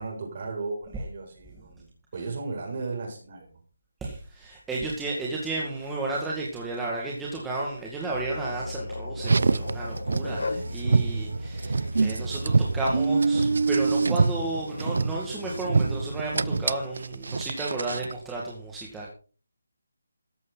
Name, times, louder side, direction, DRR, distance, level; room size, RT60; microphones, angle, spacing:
voice 1, 0.0-3.5, right 3 dB, 40° right, 0 dB, 6.9 m, -35 dB
voice 2, 4.0-19.1, right 2 dB, 5° right, -4 dB, 2.0 m, -33 dB
sound 1, 8.1-13.2 13.9-16.7, left 2 dB, 75° left, 1.8 m, -37 dB
Car, 9.2-18.2, right 4 dB, 60° right, 0.6 m, -26 dB
14.5 x 11.0 x 4.1 m, 0.38 s
figure-of-eight pair, 170°, 0 cm